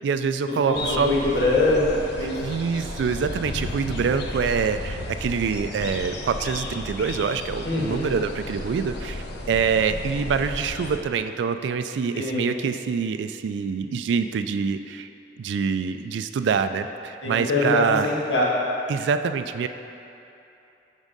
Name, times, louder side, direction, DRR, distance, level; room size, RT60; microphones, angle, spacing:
voice 1, 0.0-1.1 2.4-15.1 15.4-18.1 18.9-19.7, right 6 dB, 80° right, 9 dB, 0.3 m, -25 dB
voice 2, 0.7-2.4 7.6-8.2 12.1-12.5 17.2-18.4, left 2 dB, 85° left, -5 dB, 1.5 m, -23 dB
sound 1, 0.7-11.0, left 2 dB, 65° left, 0.7 m, -34 dB
9.2 x 3.6 x 5.2 m, 2.9 s
head